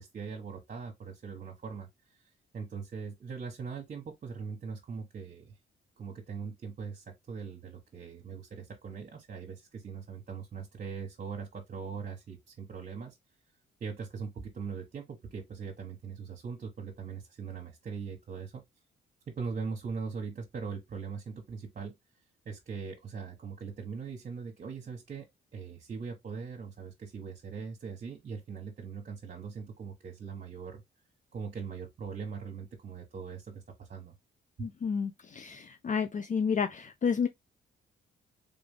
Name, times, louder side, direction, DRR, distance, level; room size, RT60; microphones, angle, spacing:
voice 1, 0.0-5.5 6.0-13.2 13.8-18.6 19.3-21.9 22.4-30.8 31.3-34.1 34.6-34.7, right 5 dB, 45° right, 1.3 m, -41 dB
voice 2, 34.6-37.3, left 6 dB, 40° left, 0.5 m, -31 dB
3.6 x 3.4 x 3.6 m
cardioid pair, 85°, 20 cm